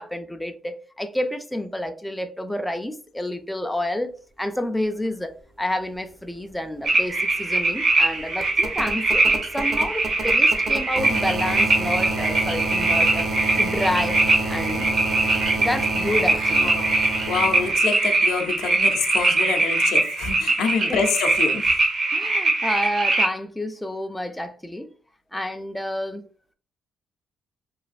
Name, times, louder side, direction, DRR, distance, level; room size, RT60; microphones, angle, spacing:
voice 1, 0.0-5.3 5.6-13.3 13.5-14.2 14.5-15.0 15.6-16.7 20.9-21.0 22.1-24.9 25.3-26.2, left 1 dB, 5° left, 0.3 m, -29 dB
sound 1, 6.5-6.6 6.8-17.7 19.1-19.2, right 2 dB, 50° right, 0.7 m, -30 dB
sound 2, 6.8-23.3, right 2 dB, 65° right, 1.0 m, -22 dB
voice 2, 16.6-21.8, left 5 dB, 90° left, 0.5 m, -27 dB
3.1 x 2.4 x 2.4 m
cardioid pair, 95°, 0 cm